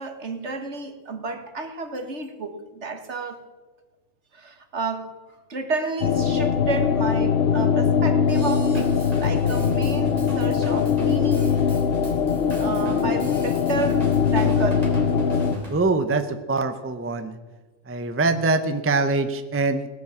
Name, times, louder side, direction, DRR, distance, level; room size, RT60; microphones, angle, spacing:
voice 1, 0.0-3.4 4.3-5.1 5.5-11.7 12.0-12.1 12.6-14.9, right 3 dB, 60° right, 6 dB, 1.8 m, -31 dB
sound 1, 6.0-15.6, left 7 dB, 60° left, 1.0 m, -21 dB
Drum kit / Drum, 8.3-15.8, right 1 dB, 30° right, 3.5 m, -38 dB
voice 2, 15.7-17.4 17.9-19.9, right 3 dB, 15° right, 8 dB, 0.7 m, -23 dB
18.5 x 10.5 x 7.2 m, 1.2 s
omnidirectional pair, 1.3 m